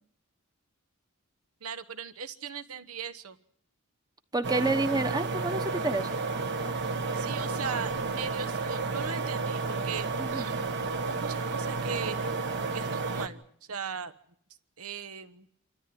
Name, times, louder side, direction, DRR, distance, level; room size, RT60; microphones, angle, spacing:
voice 1, 1.6-3.4 7.1-12.2 12.7-14.1 14.8-15.5, right 6 dB, 75° right, 11 dB, 1.2 m, -39 dB
voice 2, 4.3-6.2 10.2-10.5, right 2 dB, 20° right, 9 dB, 1.2 m, -29 dB
sound 1, 4.4-13.3, right 4 dB, 50° right, 1.4 m, -31 dB
27.0 x 13.5 x 9.4 m, 0.68 s
head